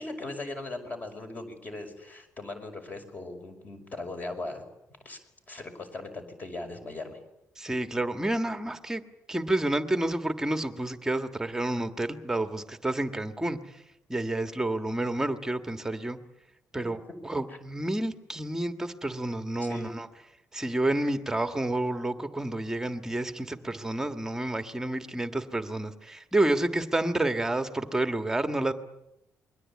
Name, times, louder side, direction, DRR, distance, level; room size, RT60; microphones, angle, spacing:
voice 1, 0.0-4.6 5.0-5.2 5.5-7.2 17.5-17.6 19.6-19.9, left 2 dB, 30° left, 6 dB, 5.4 m, -39 dB
voice 2, 7.6-9.0 9.3-13.8 14.1-16.2 16.7-17.0 17.2-20.1 20.5-28.7, right 1 dB, 10° right, 7 dB, 1.5 m, -29 dB
28.0 x 22.0 x 8.5 m, 0.88 s
cardioid pair, 160°, 6 cm